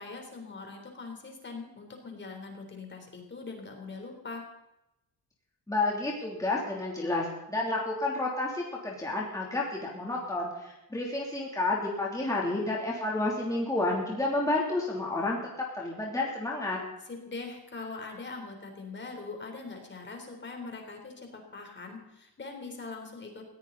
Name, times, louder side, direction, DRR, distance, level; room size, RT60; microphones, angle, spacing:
voice 1, 0.0-4.4 17.0-23.4, left 3 dB, 30° left, 3 dB, 3.9 m, -42 dB
voice 2, 5.7-15.4 15.7-16.8, left 2 dB, 10° left, -3 dB, 3.2 m, -30 dB
20.0 x 16.5 x 4.1 m, 0.92 s
wide cardioid pair, 155°, 37 cm